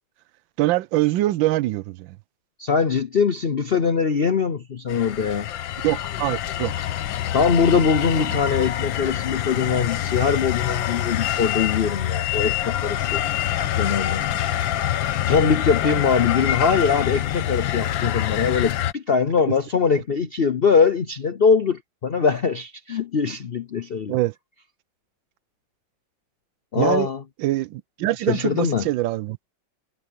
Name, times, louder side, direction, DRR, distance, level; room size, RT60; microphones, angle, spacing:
voice 1, 0.6-2.2 5.8-6.7 7.7-7.8 8.2-8.3 24.1-24.3 26.7-27.1 27.4-29.4, right 16 dB, 80° right, 1.3 m, -24 dB
voice 2, 2.6-5.5 7.3-13.2 13.8-14.2 15.3-24.1 26.7-27.2 28.3-28.8, left 6 dB, 60° left, 0.6 m, -22 dB
sound 1, 4.9-18.9, left 12 dB, 85° left, 1.6 m, -25 dB
omnidirectional pair, 2.1 m